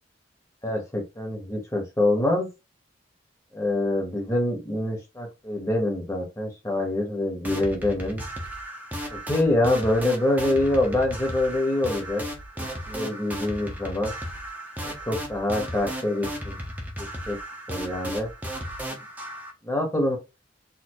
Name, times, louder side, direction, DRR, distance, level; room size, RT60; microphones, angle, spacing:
voice 1, 0.6-2.5 3.5-8.2 9.1-12.2 12.6-14.1 14.8-16.6 17.3-17.4 17.7-18.3 19.6-20.2, left 1 dB, 15° left, 0 dB, 1.7 m, -25 dB
sound 1, 7.4-19.5, equal, 10° right, 1.0 m, -35 dB
4.4 x 3.5 x 3.2 m, 0.26 s
head